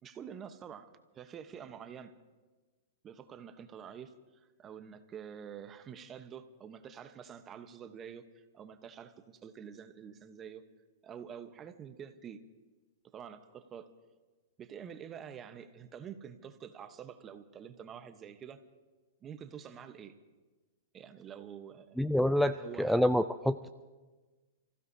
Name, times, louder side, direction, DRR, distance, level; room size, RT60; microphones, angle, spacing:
voice 1, 0.0-2.1 3.0-4.1 4.4-10.6 11.0-12.4 13.1-13.9 14.6-18.6 19.2-20.1 20.9-22.0 22.5-23.0, right 8 dB, 25° right, 9 dB, 1.0 m, -47 dB
voice 2, 22.0-23.7, equal, ahead, 12 dB, 0.4 m, -27 dB
29.5 x 15.5 x 2.8 m, 1.3 s
hypercardioid pair, 135°, 0 cm